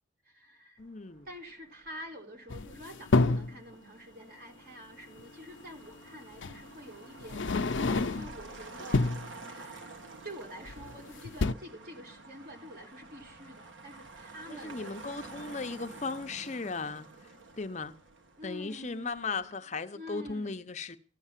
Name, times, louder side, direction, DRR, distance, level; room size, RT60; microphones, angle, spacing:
voice 1, 0.2-0.8 1.3-9.0 9.4-10.0 10.2-15.2 18.4-19.5 19.9-20.7, equal, 50° right, 3.8 m, -47 dB
voice 2, 0.8-1.3 14.5-17.1 17.6-17.9 18.4-21.0, left 4 dB, 35° left, 0.7 m, -37 dB
Motor vehicle (road), 0.8-19.5, right 3 dB, 75° right, 1.7 m, -50 dB
sound 1, 2.5-3.6 5.2-5.3 6.4-6.6 7.2-8.4 8.8-9.3 10.6-11.0 11.3-11.5, left 3 dB, 70° left, 0.6 m, -28 dB
15.0 x 11.0 x 7.4 m
head